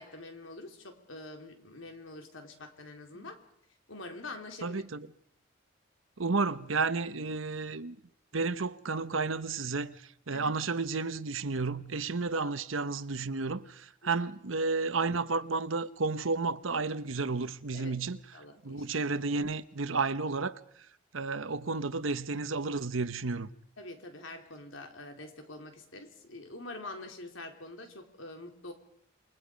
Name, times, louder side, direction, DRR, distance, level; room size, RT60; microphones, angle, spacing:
voice 1, 0.0-3.4 3.9-4.8 10.3-10.5 12.3-12.5 14.0-14.1 17.7-17.9 18.3-18.9 23.8-28.7, left 2 dB, 85° left, 3.9 m, -45 dB
voice 2, 4.6-5.1 6.2-8.0 8.3-18.2 18.6-20.6 21.1-23.5, right 4 dB, 90° right, 1.1 m, -32 dB
28.0 x 22.5 x 5.3 m
head